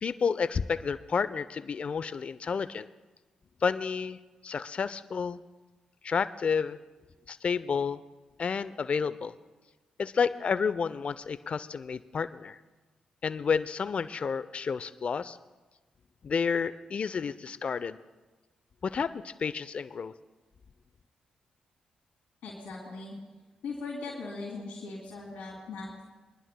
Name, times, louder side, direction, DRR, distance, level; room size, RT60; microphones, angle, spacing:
voice 1, 0.0-2.9 3.6-5.4 6.0-6.8 7.3-8.0 8.4-9.3 10.0-12.6 13.2-15.4 16.2-18.0 18.8-20.1, left 6 dB, 55° left, 15 dB, 0.5 m, -30 dB
voice 2, 22.4-23.1 23.6-26.1, left 3 dB, 80° left, -4 dB, 2.3 m, -39 dB
26.0 x 11.0 x 2.2 m, 1.2 s
supercardioid pair, 45°, 3 cm